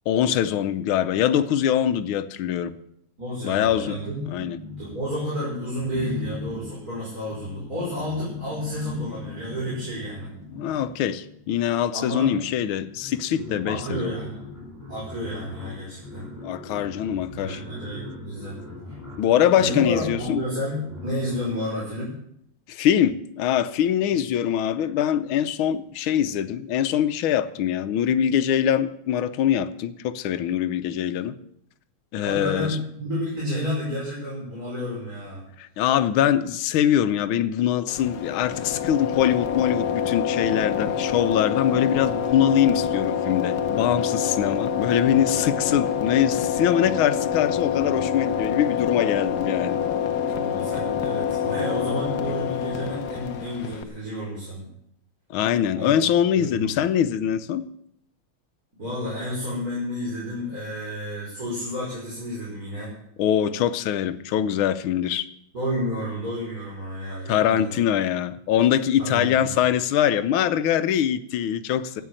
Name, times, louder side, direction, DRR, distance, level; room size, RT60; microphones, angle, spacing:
voice 1, 0.1-2.7 3.4-4.0 4.3-4.6 10.5-14.1 16.4-17.6 19.2-20.4 22.7-31.4 32.1-32.8 35.6-49.8 55.3-57.6 63.2-65.3 67.3-72.0, left 10 dB, 75° left, 10 dB, 1.6 m, -23 dB
voice 2, 3.2-4.2 4.8-10.3 11.9-12.6 13.6-14.4 14.9-16.3 17.3-18.6 19.6-22.1 32.2-35.4 50.3-54.7 55.7-55.9 56.3-56.7 58.8-62.9 65.5-67.8 69.0-69.5 72.0-72.1, left 1 dB, 40° right, -6 dB, 5.9 m, -31 dB
sound 1, 3.5-5.3 5.8-11.5 12.4-12.5 12.8-21.6, left 2 dB, ahead, 6.7 m, -40 dB
sound 2, 37.9-53.8, left 8 dB, 60° left, 1.2 m, -26 dB
13.0 x 8.6 x 8.9 m, 0.73 s
omnidirectional pair, 2.3 m